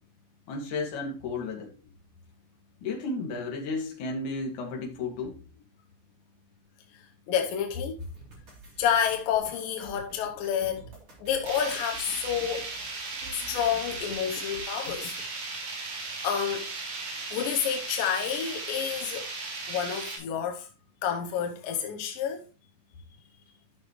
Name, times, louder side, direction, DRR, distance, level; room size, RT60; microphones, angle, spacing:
voice 1, 0.5-1.7 2.8-5.4, left 3 dB, 50° left, 2.8 m, -33 dB
voice 2, 6.9-8.0 8.8-10.9 11.2-12.7 13.3-15.2 16.2-16.7 17.3-19.3 19.7-20.7 21.0-22.5, left 8 dB, 80° left, 2.0 m, -29 dB
sound 1, 8.0-15.2, right 2 dB, 35° right, 3.7 m, -49 dB
sound 2, 11.4-20.2, right 3 dB, 90° right, 6.2 m, -36 dB
12.5 x 6.3 x 3.0 m
omnidirectional pair, 5.2 m